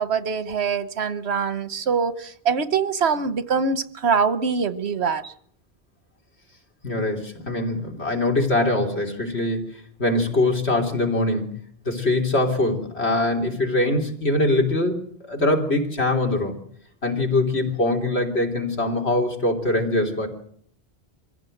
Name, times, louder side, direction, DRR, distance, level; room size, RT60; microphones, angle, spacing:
voice 1, 0.0-5.3, right 5 dB, 90° right, 1.4 m, -24 dB
voice 2, 6.8-9.6 10.0-11.6 11.9-16.6 17.0-20.3, left 2 dB, 90° left, 3.8 m, -23 dB
24.5 x 16.0 x 7.9 m
omnidirectional pair, 1.1 m